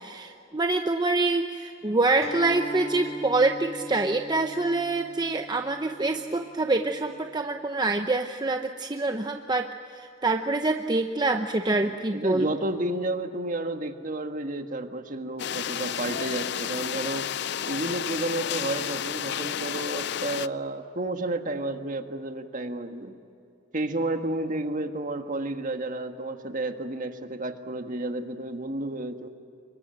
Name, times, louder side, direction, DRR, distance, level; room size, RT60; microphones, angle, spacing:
voice 1, 0.0-12.5, right 2 dB, 20° right, 5 dB, 0.8 m, -26 dB
Acoustic guitar, 2.2-7.4, equal, 30° left, 1.8 m, -40 dB
voice 2, 11.8-17.3 17.7-23.1 23.7-29.3, right 2 dB, 45° right, 7 dB, 1.6 m, -31 dB
sound 1, 15.4-20.5, left 9 dB, 60° left, 0.5 m, -31 dB
26.0 x 22.5 x 9.0 m, 2.6 s
head